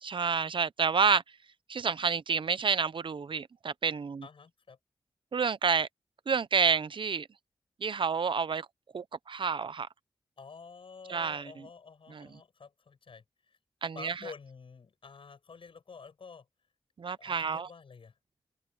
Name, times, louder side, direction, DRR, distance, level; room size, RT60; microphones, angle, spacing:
voice 1, 0.0-1.2 1.7-4.2 5.3-5.9 6.3-7.3 7.8-8.7 8.9-9.9 11.1-11.5 12.1-12.3 13.8-14.1 17.0-17.7, right 5 dB, 60° right, 0.7 m, -29 dB
voice 2, 4.2-4.8 10.4-13.6 13.9-16.5 17.2-18.2, left 5 dB, 70° left, 7.5 m, -49 dB
cardioid pair, 60°, 9 cm